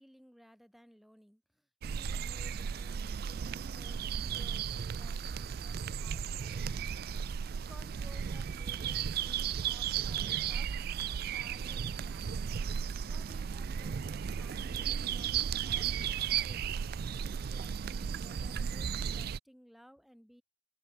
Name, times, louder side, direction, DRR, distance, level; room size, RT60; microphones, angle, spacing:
voice 1, 0.0-6.9 7.5-12.7 13.1-20.4, equal, ahead, 6.7 m, -58 dB
sound 1, 1.8-19.4, right 7 dB, 55° right, 0.4 m, -35 dB
open air
head